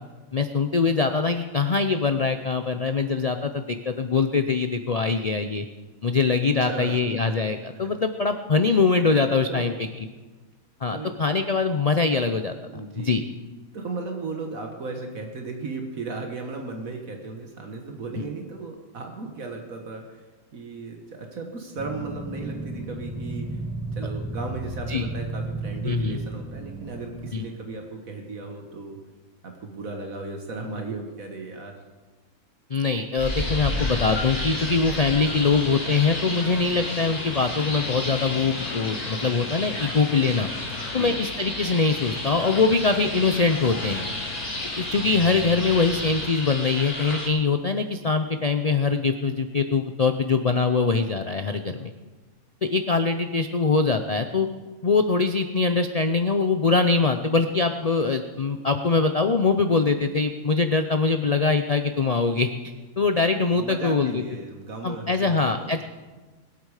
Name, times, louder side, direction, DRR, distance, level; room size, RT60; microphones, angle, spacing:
voice 1, 0.3-5.7 6.0-9.7 10.8-12.5 13.0-13.2 24.9-25.1 25.8-26.2 27.3-27.5 32.7-40.5 40.9-44.1 44.8-51.9 52.6-54.5 54.8-64.2 64.8-65.8, left 4 dB, 60° left, 7 dB, 0.4 m, -23 dB
voice 2, 6.6-7.1 9.5-9.7 10.9-11.1 12.7-13.2 13.7-20.3 20.5-23.6 23.9-29.0 29.4-31.7 40.9-41.2 63.5-65.7, right 3 dB, 65° right, 3 dB, 1.8 m, -35 dB
sound 1, 21.8-27.3, right 2 dB, 5° right, 0.6 m, -33 dB
sound 2, 33.2-47.3, left 1 dB, 25° left, 3.0 m, -32 dB
sound 3, 33.4-46.3, left 7 dB, 85° left, 1.3 m, -39 dB
22.0 x 8.3 x 4.9 m, 1.3 s
omnidirectional pair, 1.6 m